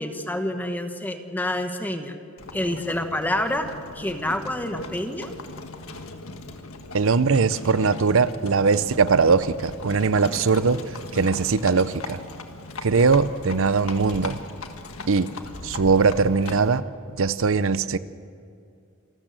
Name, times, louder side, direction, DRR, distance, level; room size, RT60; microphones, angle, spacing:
voice 1, 0.0-2.2 2.5-3.7 3.9-5.3, left 1 dB, 10° left, 6 dB, 1.1 m, -28 dB
Livestock farm animals working animals, 2.4-16.8, left 3 dB, 75° left, 1.7 m, -39 dB
voice 2, 6.9-12.2 12.8-14.4 15.1-15.3 15.6-18.0, right 4 dB, 70° right, 15 dB, 0.7 m, -21 dB
27.5 x 13.5 x 7.7 m, 2.4 s
head